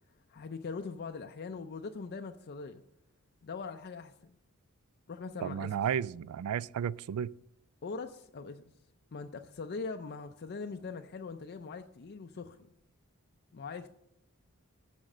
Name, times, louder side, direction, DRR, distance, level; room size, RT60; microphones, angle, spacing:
voice 1, 0.3-2.8 3.4-4.1 5.1-5.7 7.8-8.6 9.1-12.6 13.5-13.9, left 4 dB, 50° left, 0.4 m, -41 dB
voice 2, 5.4-7.3, right 8 dB, 75° right, 0.3 m, -33 dB
8.7 x 6.3 x 6.4 m
head